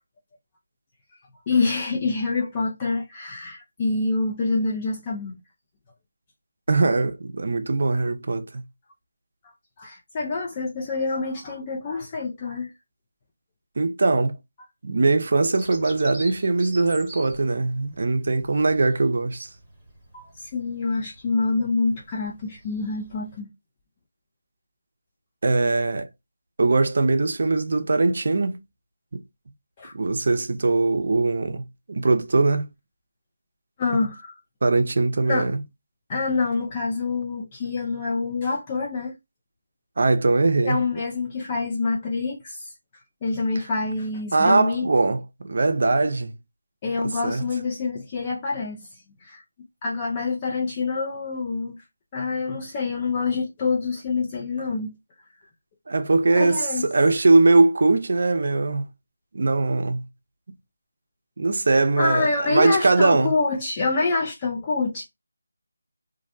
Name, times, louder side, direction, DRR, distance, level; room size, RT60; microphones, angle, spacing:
voice 1, 1.5-5.4 9.4-12.7 20.1-23.5 29.8-30.0 33.8-34.3 35.2-35.5 36.1-39.2 40.6-42.7 43.2-44.9 46.8-48.9 49.2-49.4 49.8-51.8 52.1-54.9 56.3-56.9 62.0-65.0, left 3 dB, 20° left, 0.4 m, -26 dB
voice 2, 6.7-8.6 13.8-14.3 14.8-19.5 25.4-26.1 26.6-28.6 29.1-29.2 29.9-32.7 34.6-35.6 40.0-40.8 44.3-46.3 47.2-47.4 55.9-58.8 59.3-60.0 61.4-63.3, right 3 dB, 55° right, 0.5 m, -21 dB
Bird vocalization bird call bird song, 15.5-23.4, right 1 dB, 5° right, 1.0 m, -45 dB
2.5 x 2.0 x 2.6 m
figure-of-eight pair, 165°, 0 cm